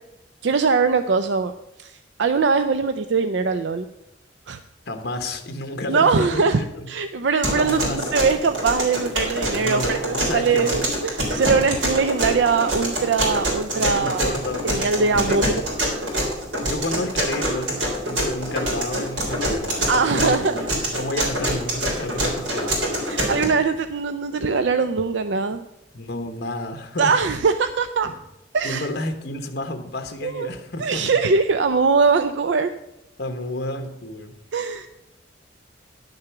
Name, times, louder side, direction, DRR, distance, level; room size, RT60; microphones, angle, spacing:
voice 1, 0.4-1.5 1.8-3.9 4.5-4.6 5.9-6.6 6.9-14.3 14.6-15.6 19.9-20.7 23.0-25.6 27.0-28.1 28.5-28.9 30.2-30.5 30.8-32.7 34.5-34.9, right 4 dB, 65° right, 9 dB, 0.5 m, -21 dB
voice 2, 4.9-6.9 7.4-8.0 9.5-10.9 13.8-15.4 16.6-23.2 25.9-27.1 28.0-28.1 28.6-31.2 33.2-34.3, left 1 dB, 60° left, 6 dB, 1.1 m, -31 dB
sound 1, 7.4-23.4, right 1 dB, 80° right, 3.6 m, -25 dB
10.5 x 6.7 x 5.8 m, 0.88 s
head